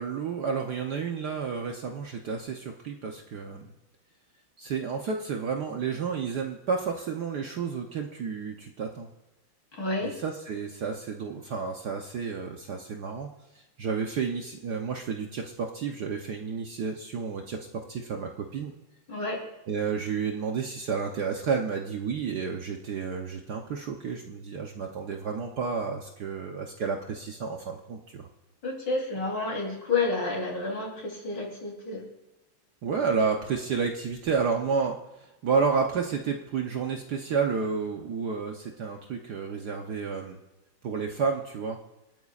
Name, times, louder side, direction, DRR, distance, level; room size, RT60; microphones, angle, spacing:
voice 1, 0.0-3.7 4.6-9.1 10.0-13.3 13.5-18.7 19.7-28.3 32.8-40.4 40.8-41.8, right 5 dB, 60° right, 2 dB, 1.2 m, -31 dB
voice 2, 9.7-10.1 19.1-19.4 28.6-32.0, left 3 dB, 55° left, -1 dB, 4.2 m, -30 dB
27.0 x 9.1 x 2.4 m, 1.0 s
omnidirectional pair, 2.4 m